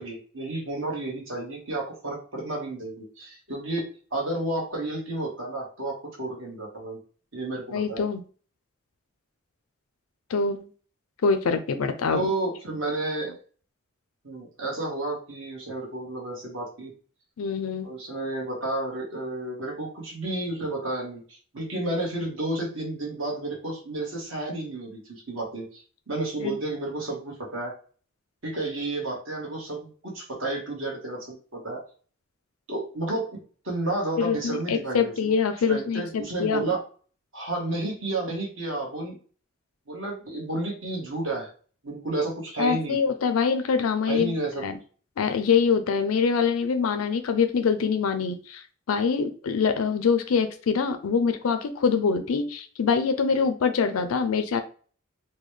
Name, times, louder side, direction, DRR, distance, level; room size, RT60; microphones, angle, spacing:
voice 1, 0.0-3.8 4.1-7.0 7.3-8.1 12.1-13.4 14.2-16.9 17.8-27.7 28.4-31.8 32.7-33.4 33.6-35.3 35.7-36.8 37.3-39.2 39.9-41.5 41.8-43.0 44.1-44.6 53.3-53.4, right 2 dB, 60° right, -1 dB, 1.3 m, -31 dB
voice 2, 7.7-8.2 10.3-10.7 11.2-12.3 17.4-17.9 26.4-26.6 34.2-36.7 42.6-44.4 44.6-44.8 45.2-54.6, left 5 dB, 80° left, 9 dB, 0.4 m, -24 dB
3.9 x 2.2 x 3.2 m, 0.41 s
head